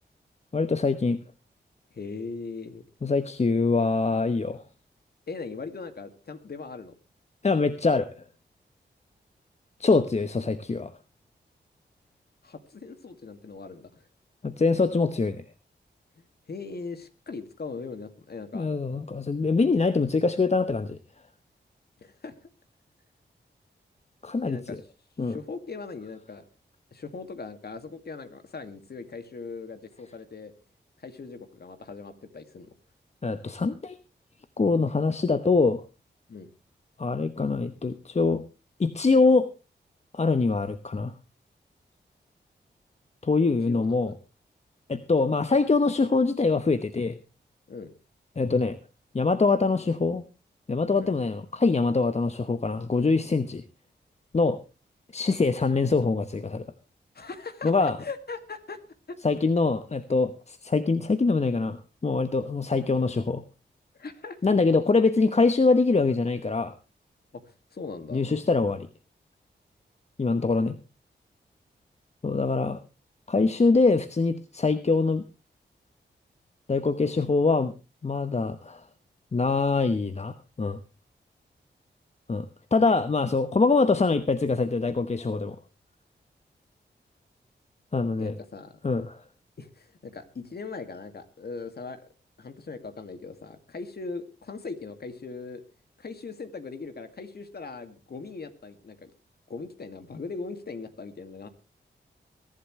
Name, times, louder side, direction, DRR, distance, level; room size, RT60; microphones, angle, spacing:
voice 1, 0.5-1.2 3.0-4.6 7.4-8.2 9.8-10.9 14.4-15.4 18.5-21.0 24.2-24.8 25.2-25.4 33.2-34.0 34.6-35.8 37.0-38.4 38.8-39.5 40.1-41.1 43.2-44.1 44.9-47.2 48.4-48.8 49.1-50.2 50.7-53.6 54.3-54.6 55.1-56.7 57.6-58.0 59.2-63.4 64.4-66.7 68.1-68.9 70.2-70.8 72.2-72.8 73.3-75.2 76.7-77.7 78.0-78.8 79.3-80.8 82.3-85.6 87.9-88.4 88.8-89.2, left 3 dB, 35° left, 11 dB, 0.9 m, -24 dB
voice 2, 1.9-2.8 5.3-6.9 12.4-14.0 16.2-18.7 22.0-22.3 24.5-24.8 25.2-26.4 26.9-30.5 31.0-32.7 36.3-36.5 43.7-44.0 47.7-47.9 51.0-51.1 57.1-58.8 59.1-59.2 64.0-64.5 67.7-68.2 88.2-88.8 89.6-92.1 92.4-95.6 96.0-99.1 99.5-101.5, left 4 dB, 60° left, 8 dB, 2.2 m, -39 dB
22.0 x 11.5 x 3.2 m, 0.31 s
cardioid pair, 60°, 19 cm